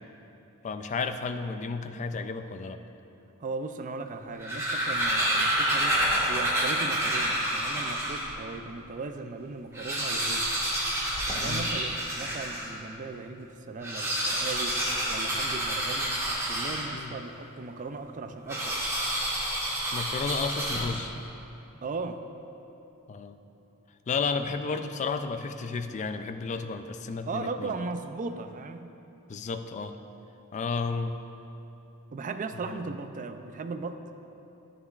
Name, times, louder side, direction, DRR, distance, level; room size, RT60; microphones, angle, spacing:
voice 1, 0.6-2.8 11.4-11.7 16.9-17.2 19.9-21.1 23.1-23.4 24.1-27.7 29.3-30.0 30.5-31.2 32.5-32.8, left 4 dB, 35° left, 8 dB, 0.3 m, -32 dB
voice 2, 3.4-6.0 6.3-10.5 11.3-14.8 15.1-16.1 16.4-18.8 21.8-22.2 24.7-24.8 27.3-28.9 32.1-34.0, right 3 dB, 35° right, 8 dB, 0.4 m, -37 dB
sound 1, 4.2-8.4 8.9-9.0 9.2-9.3 9.6-12.8 13.7-17.2 18.5-21.2, right 1 dB, 15° right, 1.5 m, -28 dB
11.0 x 9.8 x 2.4 m, 2.9 s
head